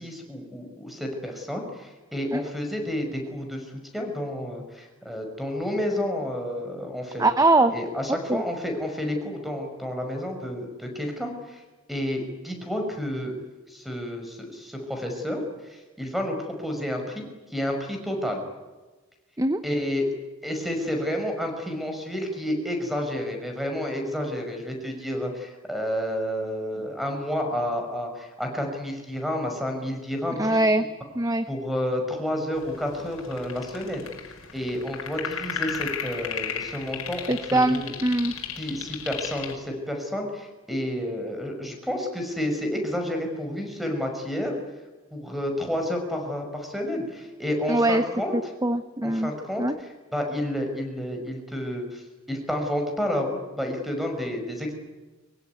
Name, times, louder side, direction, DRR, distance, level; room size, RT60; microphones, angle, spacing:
voice 1, 0.0-7.2 7.7-11.6 11.9-13.3 13.7-17.3 17.5-18.4 19.6-20.1 20.4-30.6 31.5-34.1 34.5-38.0 38.6-44.5 45.1-48.3 49.0-54.7, left 1 dB, ahead, 4 dB, 5.9 m, -30 dB
voice 2, 7.2-7.7 8.3-8.4 19.4-19.6 30.4-30.8 31.2-31.4 37.3-38.3 47.7-48.0 48.3-49.3 49.6-49.8, right 2 dB, 15° right, 10 dB, 0.8 m, -22 dB
sound 1, 32.6-39.5, left 7 dB, 90° left, 5.3 m, -35 dB
24.0 x 23.5 x 9.6 m, 1.2 s
head